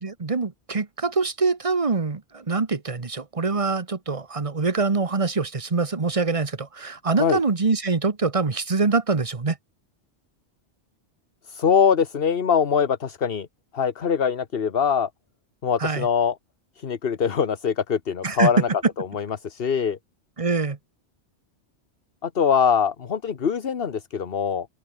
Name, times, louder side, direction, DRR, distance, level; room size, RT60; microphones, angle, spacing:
voice 1, 0.0-9.6 15.8-16.1 18.2-18.5 20.4-20.8, right 4 dB, 30° right, 1.3 m, -24 dB
voice 2, 11.4-13.5 13.7-15.1 15.6-16.3 16.8-18.7 19.0-20.0 22.2-24.7, left 7 dB, 55° left, 1.3 m, -23 dB
omnidirectional pair, 1.2 m